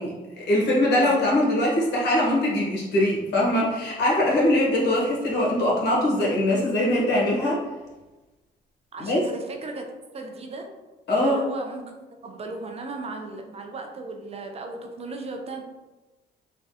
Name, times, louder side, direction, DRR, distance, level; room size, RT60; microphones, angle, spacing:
voice 1, 0.0-7.6 9.0-9.2 11.1-11.4, left 1 dB, 70° left, -3 dB, 1.0 m, -22 dB
voice 2, 1.0-1.3 8.9-10.7 11.2-15.6, right 3 dB, 35° right, 3 dB, 0.4 m, -36 dB
3.3 x 2.2 x 2.7 m, 1.1 s
cardioid pair, 95°, 18 cm